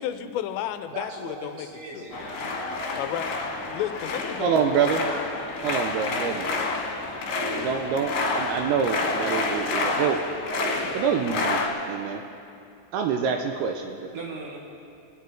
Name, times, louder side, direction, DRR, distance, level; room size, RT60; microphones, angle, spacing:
voice 1, 0.0-1.7 1.9-2.1 2.9-3.4 3.7-4.8, left 11 dB, 90° left, 9 dB, 2.8 m, -32 dB
voice 2, 0.9-2.5 14.1-14.6, right 3 dB, 65° right, -1 dB, 2.4 m, -38 dB
sound 1, 2.1-11.7, left 3 dB, 70° left, 3.3 m, -29 dB
voice 3, 4.4-5.1 5.6-6.6 7.6-10.2 10.9-12.2 12.9-14.1, right 7 dB, 85° right, 4 dB, 2.4 m, -26 dB
21.0 x 9.4 x 4.5 m, 2.5 s
omnidirectional pair, 5.0 m